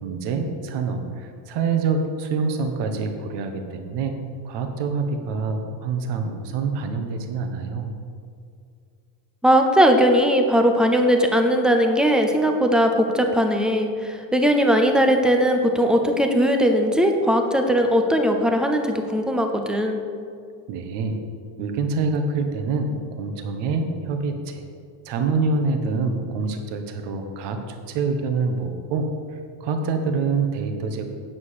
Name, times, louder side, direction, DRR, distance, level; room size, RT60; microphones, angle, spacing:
voice 1, 0.0-4.1 4.4-7.9 20.7-21.2 21.6-24.6 25.0-31.1, right 4 dB, 55° right, 5 dB, 1.4 m, -26 dB
voice 2, 9.4-20.0, equal, ahead, 4 dB, 0.4 m, -19 dB
9.3 x 7.9 x 6.6 m, 2.3 s
cardioid pair, 170°, 49 cm